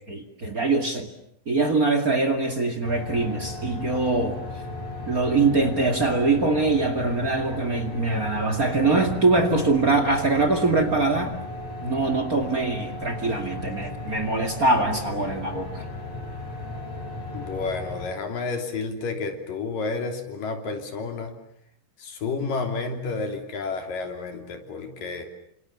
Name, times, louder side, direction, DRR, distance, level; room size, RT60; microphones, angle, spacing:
voice 1, 0.1-1.1 1.5-4.4 5.1-11.3 11.8-15.8, right 3 dB, 30° right, 9 dB, 2.4 m, -23 dB
sound 1, 2.8-18.1, left 2 dB, 50° left, 6.5 m, -36 dB
voice 2, 17.3-21.4 22.0-25.3, left 4 dB, 80° left, 5 dB, 4.9 m, -30 dB
30.0 x 26.5 x 7.1 m, 0.72 s
omnidirectional pair, 3.8 m